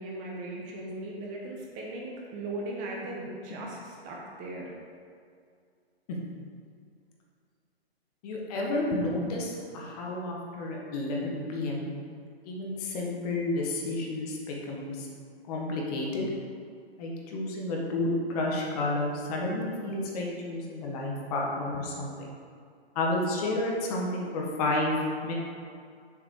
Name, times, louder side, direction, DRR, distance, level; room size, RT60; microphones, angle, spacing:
voice 1, 0.0-4.7, right 2 dB, 25° right, -2 dB, 1.1 m, -38 dB
voice 2, 8.2-11.8 12.4-15.1 15.5-16.3 17.0-22.3 22.9-24.9 25.2-25.3, left 2 dB, 35° left, -2 dB, 1.6 m, -31 dB
7.1 x 4.8 x 6.5 m, 2.3 s
hypercardioid pair, 130°, 32 cm